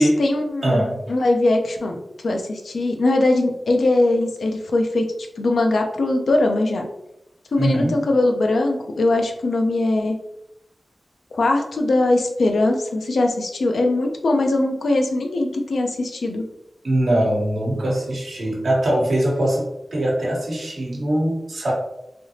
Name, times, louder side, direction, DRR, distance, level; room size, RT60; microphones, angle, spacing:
voice 1, 0.0-0.8 1.1-5.0 5.4-6.9 7.5-10.2 11.3-16.5, left 2 dB, 90° left, 3 dB, 0.5 m, -21 dB
voice 2, 0.6-1.0 7.6-8.0 16.8-21.7, right 1 dB, 80° right, -2 dB, 1.0 m, -21 dB
3.3 x 2.7 x 2.8 m, 0.85 s
wide cardioid pair, 65°, 0 cm